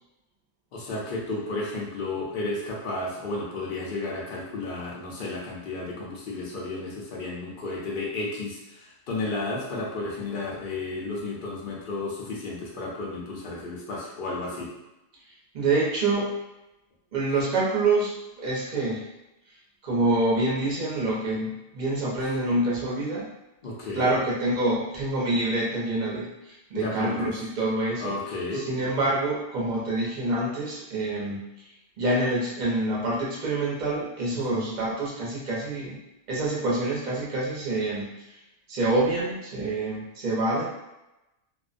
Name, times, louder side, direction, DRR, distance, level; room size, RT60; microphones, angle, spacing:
voice 1, 0.7-14.7 23.6-24.1 26.7-27.3 28.0-28.7 34.3-34.6, left 2 dB, 55° left, -3 dB, 0.7 m, -33 dB
voice 2, 15.5-16.4 17.1-19.0 19.8-23.3 23.9-28.2 28.5-31.7 32.0-36.0 36.3-38.4 38.7-40.6, right 2 dB, 45° right, -5 dB, 0.7 m, -26 dB
2.5 x 2.1 x 2.4 m, 0.95 s
omnidirectional pair, 1.3 m